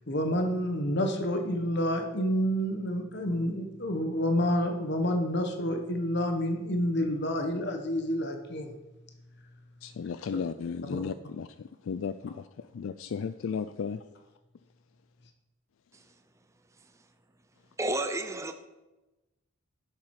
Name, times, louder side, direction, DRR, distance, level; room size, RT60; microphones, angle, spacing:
voice 1, 0.1-8.7 10.9-11.0, equal, 50° left, 1.1 m, -29 dB
voice 2, 9.8-11.5 11.9-12.5 12.7-14.0, left 6 dB, 65° left, 0.3 m, -34 dB
voice 3, 17.8-18.5, right 1 dB, 15° right, 0.5 m, -31 dB
11.5 x 7.4 x 4.8 m
head